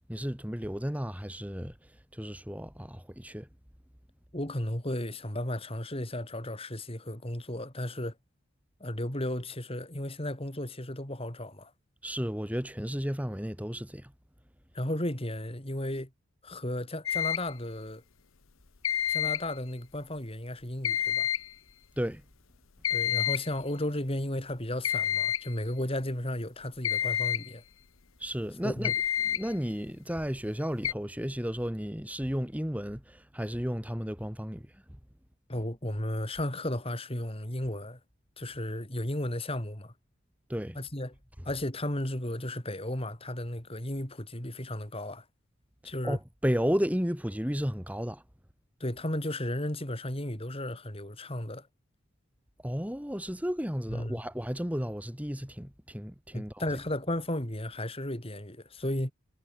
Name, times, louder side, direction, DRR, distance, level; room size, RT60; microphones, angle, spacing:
voice 1, 0.1-1.8 2.1-3.5 12.0-14.1 22.0-22.2 28.2-28.9 29.2-34.7 40.5-40.8 46.0-48.2 52.6-56.7, equal, 5° right, 3.1 m, -33 dB
voice 2, 4.3-8.2 8.8-11.7 14.7-16.1 16.4-18.0 19.1-21.3 22.9-27.6 28.6-28.9 35.5-38.0 38.4-39.9 40.8-41.2 41.5-45.2 45.8-46.2 48.8-51.7 53.9-54.2 56.3-59.1, left 1 dB, 30° left, 3.9 m, -34 dB
sound 1, 17.1-17.5 18.8-19.5 20.8-21.5 22.8-23.5 24.8-25.5 26.8-27.5 28.8-29.5 30.8-30.9, left 10 dB, 90° left, 1.1 m, -29 dB
head